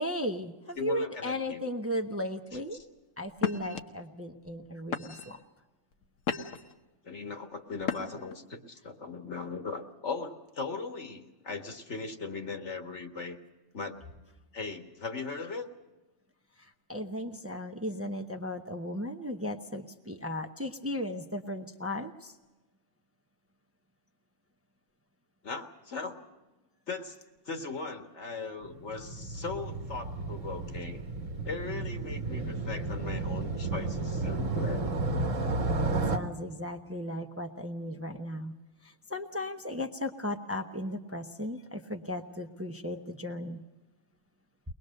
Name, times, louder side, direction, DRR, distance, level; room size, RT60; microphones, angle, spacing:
voice 1, 0.0-2.8 3.2-5.4 16.6-22.3 35.9-38.5 38.8-43.6, left 1 dB, 15° right, 4 dB, 0.8 m, -36 dB
voice 2, 0.8-1.6 2.7-2.9 7.0-13.4 13.7-14.0 14.5-15.7 25.4-26.2 26.9-27.2 27.5-31.0 31.4-34.9, left 4 dB, 65° left, 4 dB, 2.0 m, -38 dB
sound 1, 2.5-2.8 3.4-3.8 4.5-4.6 4.9-5.4 5.9-6.7 7.8-8.3, left 7 dB, 85° left, 1.4 m, -34 dB
Motorcycle, 28.6-36.2, right 3 dB, 85° right, 1.8 m, -32 dB
23.0 x 20.5 x 6.5 m, 1.1 s
omnidirectional pair, 1.3 m